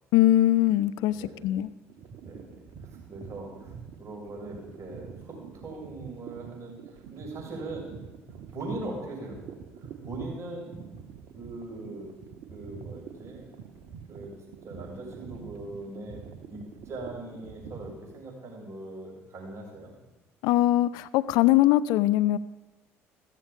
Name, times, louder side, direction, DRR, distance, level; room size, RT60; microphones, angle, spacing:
voice 1, 0.1-1.2 1.4-1.7 20.4-22.4, left 14 dB, 65° left, 16 dB, 0.5 m, -21 dB
voice 2, 1.1-1.6 2.2-3.7 4.0-6.8 7.1-7.9 8.5-10.8 11.4-12.1 12.5-13.5 14.1-14.3 14.6-16.2 16.5-19.9, right 2 dB, 40° right, -1 dB, 6.8 m, -40 dB
sound 1, 1.9-18.0, right 7 dB, 60° right, 1.5 m, -46 dB
15.0 x 14.0 x 5.2 m, 1.1 s
figure-of-eight pair, 55°, 7 cm